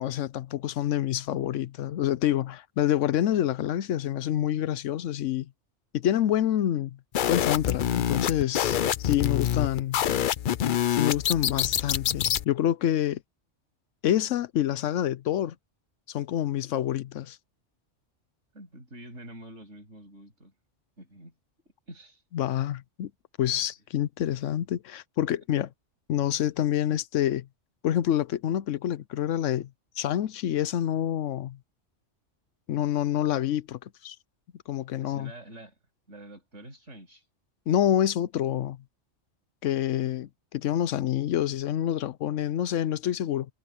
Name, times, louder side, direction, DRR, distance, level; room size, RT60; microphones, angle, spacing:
voice 1, 0.0-5.5 5.9-7.0 7.3-10.0 10.9-13.2 14.0-15.5 16.1-17.4 22.3-23.1 23.4-25.7 26.1-27.4 27.8-29.7 30.0-31.6 32.7-34.2 34.7-35.3 37.7-38.8 39.6-43.5, left 11 dB, 90° left, 1.0 m, -27 dB
sound 1, 7.1-12.4, left 10 dB, 55° left, 0.6 m, -26 dB
voice 2, 18.5-20.5 21.0-21.3 21.9-22.2 35.0-35.8 36.1-37.3, right 1 dB, 80° right, 8.1 m, -46 dB
omnidirectional pair, 1.2 m